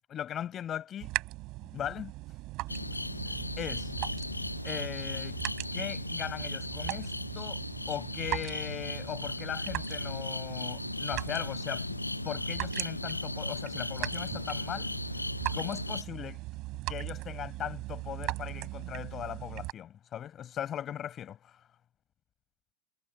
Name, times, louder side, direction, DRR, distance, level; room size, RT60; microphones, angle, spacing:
voice 1, 0.1-1.1 1.6-2.1 2.9-3.9 4.6-5.4 5.7-12.0 12.2-14.9 15.5-16.4 16.9-21.6, left 10 dB, 25° left, 5.6 m, -39 dB
sound 1, 1.0-19.7, right 20 dB, 40° right, 6.5 m, -40 dB
sound 2, 2.7-16.0, left 2 dB, 85° left, 0.5 m, -36 dB
figure-of-eight pair, 90°, 0 cm